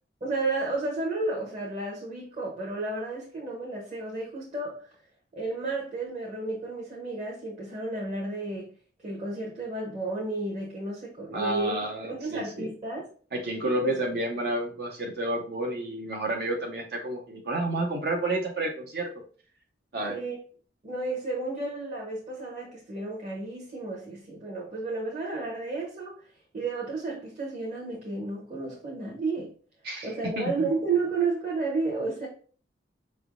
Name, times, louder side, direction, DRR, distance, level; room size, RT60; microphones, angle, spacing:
voice 1, 0.2-5.0 5.3-8.7 9.0-11.8 12.1-13.1 13.6-13.9 20.1-20.4 20.8-29.5 30.0-32.3, right 3 dB, 35° right, 0.9 m, -32 dB
voice 2, 11.3-12.7 13.3-19.1 19.9-20.2 29.8-30.5, right 1 dB, 55° right, 0.5 m, -30 dB
5.0 x 3.3 x 2.5 m
head